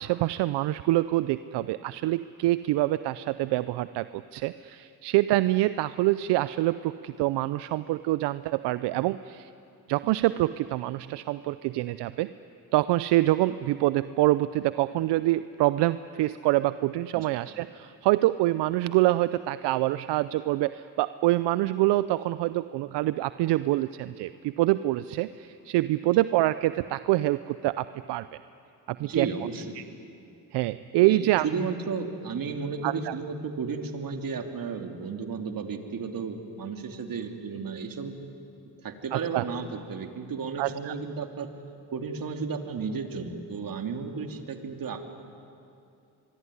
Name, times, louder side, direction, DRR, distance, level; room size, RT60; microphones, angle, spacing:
voice 1, 0.0-9.5 9.9-12.3 12.7-28.2 28.9-29.3 29.8-29.9 30.5-31.5 32.8-33.1 39.1-39.4 40.6-40.9, right 16 dB, 80° right, 14 dB, 0.7 m, -26 dB
voice 2, 29.0-29.7 31.0-38.1 38.8-41.5 41.9-45.0, right 5 dB, 55° right, 5 dB, 3.0 m, -33 dB
24.0 x 24.0 x 9.9 m, 2.7 s
supercardioid pair, 70°, 41 cm